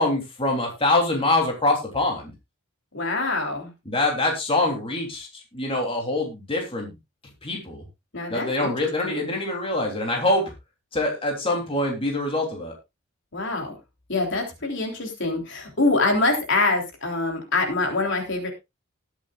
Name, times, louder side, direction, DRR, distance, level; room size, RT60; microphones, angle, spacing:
voice 1, 0.0-2.3 3.9-5.3 5.5-6.9 7.4-7.8 8.3-10.4 10.9-12.7, left 2 dB, 25° left, 0 dB, 3.3 m, -24 dB
voice 2, 2.9-3.7 8.1-9.2 13.3-13.7 14.1-18.5, left 3 dB, 60° left, 2 dB, 3.5 m, -25 dB
19.5 x 8.2 x 2.4 m, 0.23 s
head